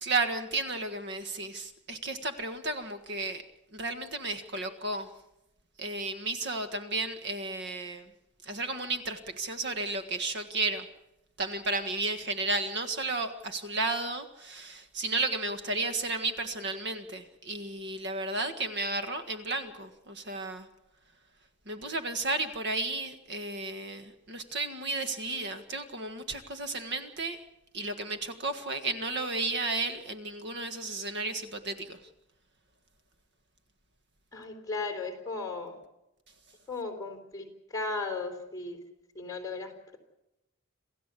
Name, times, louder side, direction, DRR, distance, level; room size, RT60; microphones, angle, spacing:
voice 1, 0.0-3.4 3.7-5.1 5.8-8.1 8.4-10.9 11.4-20.7 21.7-27.4 27.7-32.0, right 2 dB, 55° right, 9 dB, 1.6 m, -33 dB
voice 2, 34.3-35.8 36.7-38.8 39.1-40.0, left 3 dB, 15° left, 3 dB, 4.1 m, -36 dB
27.5 x 15.5 x 8.4 m, 0.90 s
head